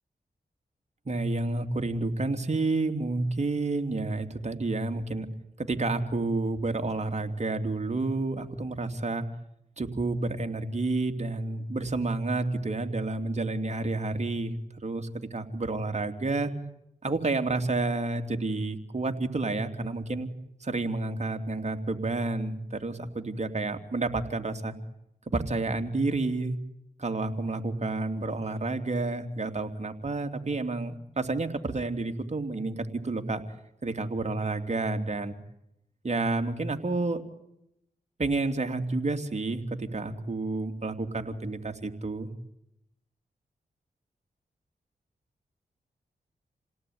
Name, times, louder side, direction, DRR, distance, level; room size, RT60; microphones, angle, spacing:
voice 1, 1.0-5.3 5.6-9.2 9.8-14.5 14.8-16.5 17.0-20.3 20.6-24.7 25.3-26.6 27.0-33.4 33.8-35.3 36.0-37.2 38.2-42.3, right 2 dB, 45° right, 6 dB, 3.1 m, -30 dB
29.0 x 18.0 x 9.7 m, 0.82 s
cardioid pair, 45°, 16 cm